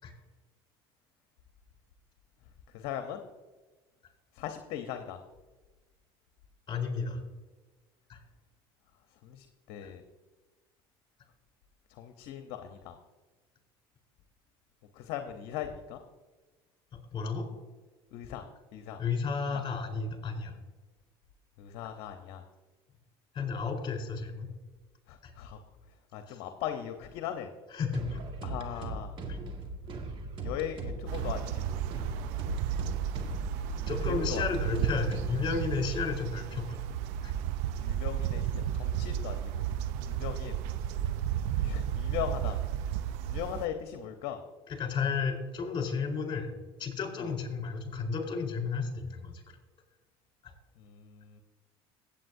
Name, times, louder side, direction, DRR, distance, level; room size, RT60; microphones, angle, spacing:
voice 1, 2.7-3.2 4.4-5.2 9.2-10.0 11.9-13.0 14.9-16.0 18.1-18.4 18.7-19.0 19.5-19.6 21.6-22.4 25.1-25.6 26.1-27.5 28.4-29.1 30.4-31.8 33.6-33.8 34.0-34.4 37.8-39.6 40.1-40.6 41.5-42.6 43.2-44.4 47.2-47.3 50.8-51.4, left 10 dB, 65° left, 6 dB, 0.9 m, -39 dB
voice 2, 6.7-7.2 8.1-8.2 9.8-9.9 17.1-17.5 19.0-20.6 23.3-24.5 25.2-25.3 26.3-26.4 27.7-28.2 29.3-29.4 33.9-36.6 37.2-37.3 44.7-46.5 46.8-49.6 50.4-50.5, left 5 dB, 35° left, 2 dB, 3.9 m, -33 dB
sound 1, 27.9-35.6, right 2 dB, 45° right, 1.8 m, -39 dB
sound 2, 31.1-43.7, right 10 dB, 70° right, 0.6 m, -33 dB
16.5 x 8.4 x 2.7 m, 1.2 s
supercardioid pair, 85°, 12 cm